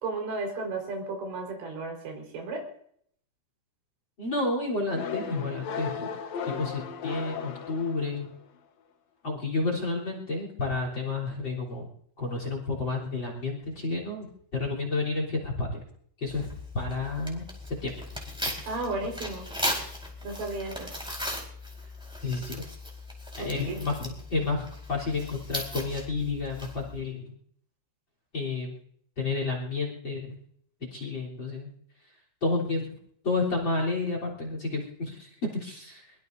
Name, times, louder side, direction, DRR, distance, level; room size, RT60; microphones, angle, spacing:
voice 1, 0.0-2.6 18.7-19.5 20.2-20.9 23.4-23.8, right 3 dB, 80° right, 1 dB, 6.8 m, -34 dB
voice 2, 4.2-6.2 6.5-8.3 9.2-11.9 12.2-15.8 16.2-17.5 17.8-17.9 18.5-18.6 22.2-22.6 23.4-27.3 28.3-28.8 29.2-30.4 30.9-31.7 32.4-32.9 33.2-36.1, left 3 dB, 30° left, 1 dB, 3.8 m, -31 dB
sound 1, 4.9-8.5, left 6 dB, 75° left, 1.6 m, -36 dB
Tearing, 16.3-27.0, left 1 dB, ahead, 3.4 m, -37 dB
23.0 x 22.5 x 2.7 m, 0.65 s
omnidirectional pair, 5.1 m